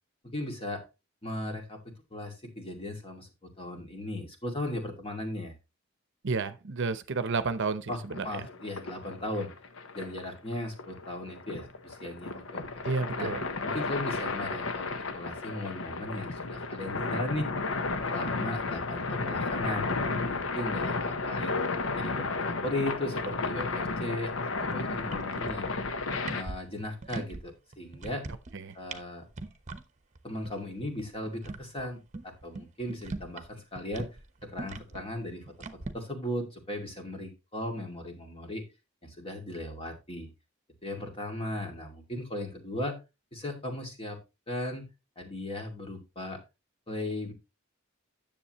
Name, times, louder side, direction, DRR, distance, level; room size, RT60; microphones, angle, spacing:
voice 1, 0.2-0.8 1.2-1.8 2.1-5.5 7.9-9.5 9.9-12.6 13.2-13.3 13.6-17.5 18.1-19.9 20.2-21.6 21.9-25.7 26.3-28.2 28.7-29.2 30.2-34.1 34.4-35.4 35.9-38.6 39.0-40.3 40.8-43.0 43.3-44.2 44.5-44.9 45.2-46.4 46.9-47.3, left 1 dB, 30° left, 2.3 m, -37 dB
voice 2, 6.2-8.3 12.8-13.4 28.5-28.8, right 4 dB, 60° right, 0.7 m, -31 dB
sound 1, 8.1-26.4, left 3 dB, 70° left, 0.9 m, -33 dB
sound 2, 24.6-24.7 25.0-25.7 26.0-27.4 27.7-28.6 28.9-29.0 29.3-29.8 30.2-30.3 30.4-30.5 30.9-33.5 33.8-35.9, right 3 dB, 35° right, 1.0 m, -40 dB
10.0 x 7.2 x 3.0 m
head